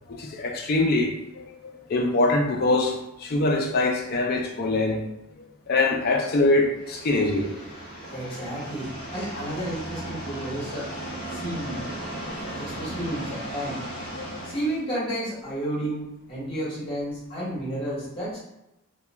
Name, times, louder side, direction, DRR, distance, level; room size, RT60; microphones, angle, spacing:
voice 1, 0.1-5.0 5.7-7.5 14.2-14.4, left 2 dB, 45° left, 2 dB, 0.4 m, -24 dB
sound 1, 6.7-14.8, right 1 dB, 5° left, 0.8 m, -36 dB
voice 2, 8.1-10.9 11.3-11.8 12.6-13.8 14.4-18.4, right 1 dB, 25° left, -8 dB, 1.1 m, -31 dB
2.4 x 2.2 x 3.0 m, 0.88 s
head